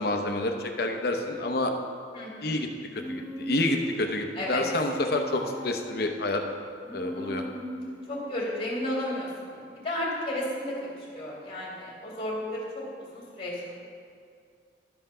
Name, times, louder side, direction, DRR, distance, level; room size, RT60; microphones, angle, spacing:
voice 1, 0.0-1.7 2.4-2.7 3.1-6.4 6.9-7.4, left 2 dB, 60° left, 4 dB, 0.8 m, -28 dB
voice 2, 2.1-2.6 4.3-4.6 8.1-13.8, left 1 dB, 35° left, -4 dB, 2.4 m, -33 dB
Human voice, 2.9-3.9 4.4-6.0 6.9-8.1, equal, 10° left, 0.9 m, -38 dB
12.0 x 5.7 x 5.6 m, 2.3 s
head